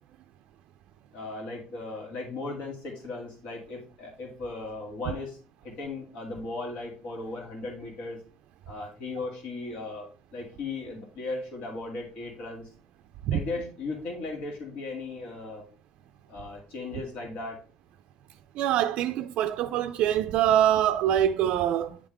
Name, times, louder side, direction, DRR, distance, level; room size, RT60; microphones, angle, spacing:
voice 1, 1.1-8.2 8.7-12.7 13.3-15.7 16.3-17.6, left 3 dB, 70° left, 2.3 m, -37 dB
voice 2, 18.6-22.0, right 11 dB, 65° right, 0.3 m, -24 dB
9.7 x 3.5 x 3.4 m
cardioid pair, 135°, 2 cm